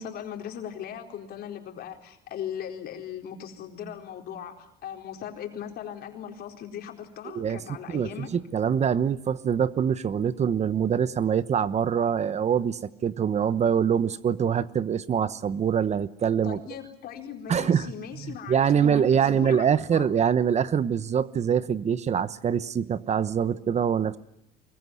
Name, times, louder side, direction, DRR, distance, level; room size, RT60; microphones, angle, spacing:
voice 1, 0.0-8.3 16.4-20.1, left 9 dB, 65° left, 3 dB, 4.3 m, -39 dB
voice 2, 7.9-16.6 17.5-17.9 18.2-24.2, right 8 dB, 40° right, 15 dB, 1.0 m, -24 dB
24.5 x 22.5 x 9.5 m, 0.76 s
cardioid pair, 110°, 17 cm